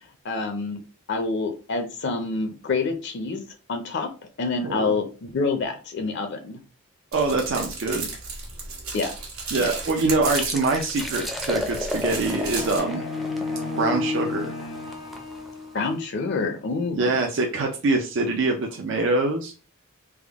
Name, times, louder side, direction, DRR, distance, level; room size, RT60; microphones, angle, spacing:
voice 1, 0.2-0.8 1.1-3.4 3.7-4.1 4.4-6.6 8.9-9.2 9.6-9.7 15.7-17.1, left 3 dB, 55° left, 6 dB, 0.5 m, -27 dB
voice 2, 4.6-5.0 7.1-8.1 9.5-13.0 13.8-14.5 16.9-19.6, right 3 dB, 60° right, 2 dB, 0.5 m, -24 dB
sound 1, 7.1-12.8, right 4 dB, 90° right, 1.4 m, -34 dB
sound 2, 10.3-15.9, left 1 dB, ahead, 0.4 m, -34 dB
sound 3, 12.1-16.0, left 3 dB, 85° left, 0.9 m, -32 dB
3.5 x 2.0 x 3.4 m, 0.35 s
head